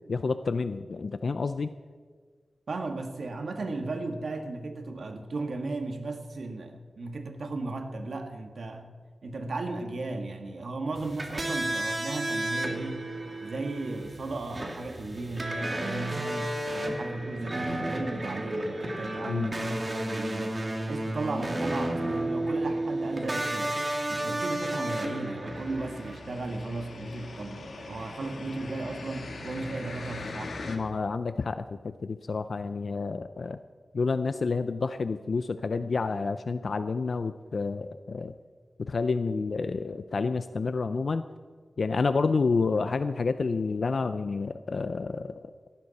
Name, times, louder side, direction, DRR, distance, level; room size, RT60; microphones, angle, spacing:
voice 1, 0.1-1.7 19.3-19.5 30.7-33.6 33.9-38.3 38.8-41.2 41.8-45.5, left 4 dB, 60° left, 0.5 m, -29 dB
voice 2, 2.7-8.9 9.2-13.1 13.4-20.6 20.9-23.8 24.1-30.8, right 2 dB, 70° right, 1.7 m, -35 dB
sound 1, 11.0-26.2, right 1 dB, 30° right, 2.2 m, -32 dB
sound 2, 25.5-30.8, left 3 dB, 75° left, 1.9 m, -41 dB
18.0 x 14.5 x 4.2 m
wide cardioid pair, 115°, 0 cm